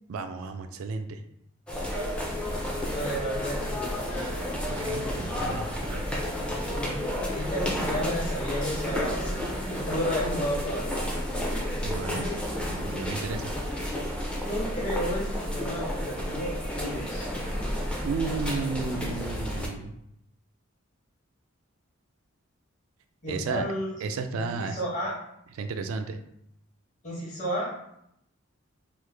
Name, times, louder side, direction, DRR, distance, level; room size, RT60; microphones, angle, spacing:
voice 1, 0.1-1.2 4.7-6.0 11.8-12.3 12.7-13.5 18.0-19.9 23.3-23.7 24.0-24.8 25.6-26.2, right 4 dB, 85° right, 8 dB, 0.3 m, -33 dB
sound 1, 1.7-19.7, equal, 5° left, 0.4 m, -31 dB
voice 2, 2.9-4.4 6.7-7.0 7.3-9.3 9.6-11.0 14.4-17.3 23.2-23.9 24.3-25.1 27.0-27.7, equal, 35° left, -6 dB, 0.9 m, -32 dB
3.1 x 2.0 x 3.3 m, 0.77 s
head